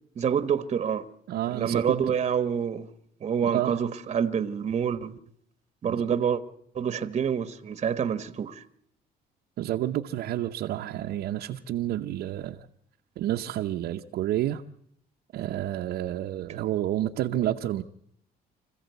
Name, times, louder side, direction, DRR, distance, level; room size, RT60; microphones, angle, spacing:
voice 1, 0.2-1.1 1.5-2.9 3.2-5.2 5.8-6.4 6.7-8.6, right 7 dB, 40° right, 1.2 m, -27 dB
voice 2, 1.3-2.0 3.4-3.8 5.8-6.2 9.6-12.6 13.2-14.6 15.3-17.8, right 12 dB, 70° right, 0.9 m, -29 dB
26.0 x 15.0 x 8.1 m
cardioid pair, 110°, 17 cm